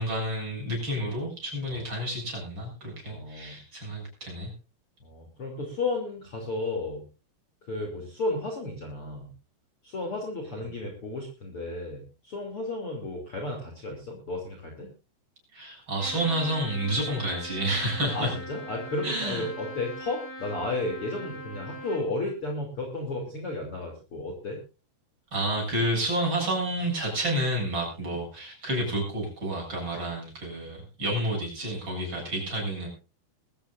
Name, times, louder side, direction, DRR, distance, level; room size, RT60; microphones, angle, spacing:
voice 1, 0.0-4.5 15.5-18.3 19.0-19.4 25.3-32.9, right 1 dB, 25° right, -1 dB, 8.3 m, -30 dB
voice 2, 3.0-3.6 5.0-7.0 7.6-9.3 9.8-14.9 18.1-24.6 28.0-28.2, left 2 dB, 35° left, 1 dB, 3.3 m, -33 dB
Trumpet, 16.0-22.1, equal, 60° left, 7.4 m, -41 dB
21.5 x 14.0 x 2.5 m, 0.32 s
omnidirectional pair, 4.9 m